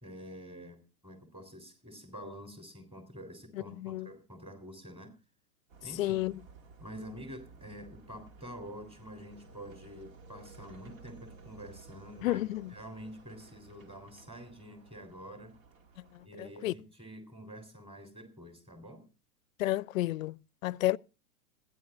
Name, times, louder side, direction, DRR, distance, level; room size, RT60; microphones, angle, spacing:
voice 1, 0.0-5.1 5.8-6.2 6.8-15.6 16.2-19.1, equal, 10° right, 3.5 m, -47 dB
voice 2, 3.8-4.1 6.0-6.4 12.2-12.7 16.4-16.7 19.6-21.0, left 16 dB, 60° left, 0.5 m, -31 dB
sound 1, 5.7-16.3, right 4 dB, 55° right, 1.9 m, -55 dB
26.0 x 10.0 x 2.5 m
hypercardioid pair, 115°, 47 cm